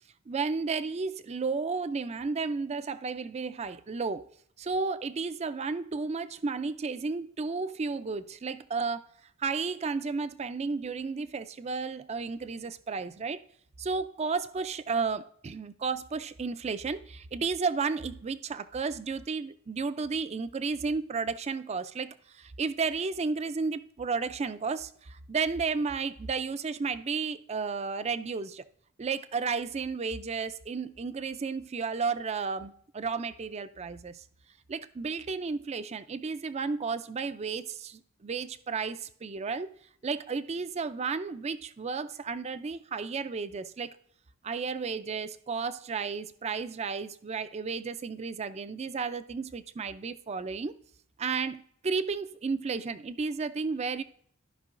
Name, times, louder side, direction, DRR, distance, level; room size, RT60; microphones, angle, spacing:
voice 1, 0.3-4.3 4.6-9.0 9.4-13.4 13.8-28.6 29.0-34.2 34.7-39.7 40.0-43.9 44.4-50.7 51.2-54.0, right 4 dB, 30° right, 0.4 m, -33 dB
14.0 x 5.4 x 2.5 m
head